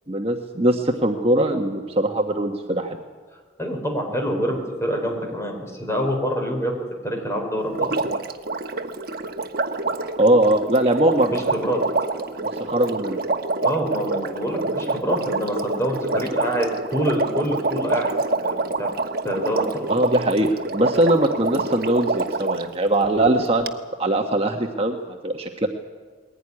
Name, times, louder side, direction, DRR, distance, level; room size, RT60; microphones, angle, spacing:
voice 1, 0.1-3.0 10.2-11.4 12.4-13.2 19.9-23.7 24.0-25.7, right 1 dB, 30° right, 3 dB, 1.2 m, -21 dB
voice 2, 3.6-6.8 7.0-7.9 11.3-11.8 13.6-18.1 18.4-18.9 19.2-19.9, equal, 15° left, 2 dB, 4.7 m, -26 dB
Water, 7.7-22.7 23.7-23.8, right 3 dB, 55° right, 1.2 m, -26 dB
21.0 x 16.5 x 9.9 m, 1.5 s
head